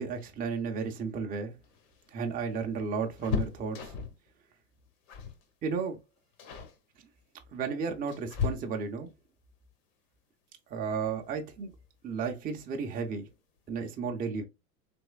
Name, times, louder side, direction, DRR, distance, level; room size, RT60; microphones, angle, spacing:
voice 1, 0.0-1.5 2.1-3.9 5.6-6.0 7.5-9.1 10.7-11.7 12.0-13.3 13.7-14.5, right 5 dB, 20° right, 0.5 m, -33 dB
sound 1, 1.6-4.3 5.1-5.4 5.7-6.0 6.4-6.8 7.6-9.1 10.8-10.9 11.3-11.4 12.6-13.0 13.3-13.4 13.7-13.9, left 7 dB, 45° left, 0.9 m, -36 dB
3.3 x 3.0 x 2.2 m
hypercardioid pair, 95°, 47 cm